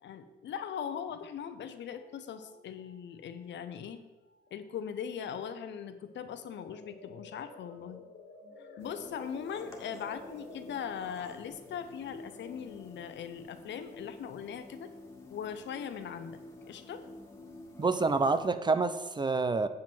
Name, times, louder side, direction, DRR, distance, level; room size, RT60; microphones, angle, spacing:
voice 1, 0.0-4.0 4.5-8.0 8.6-14.9 15.3-16.4 16.7-17.0, left 8 dB, 65° left, 10 dB, 0.8 m, -40 dB
sound 1, 1.9-4.0 4.2-4.5 4.9-5.4 5.8-12.7, left 3 dB, 85° left, 1.6 m, -53 dB
sound 2, 8.8-18.5, left 2 dB, 15° left, 1.8 m, -50 dB
voice 2, 17.8-19.7, right 3 dB, 20° right, 11 dB, 0.5 m, -27 dB
7.7 x 7.3 x 4.4 m, 1.1 s
cardioid pair, 90°, 20 cm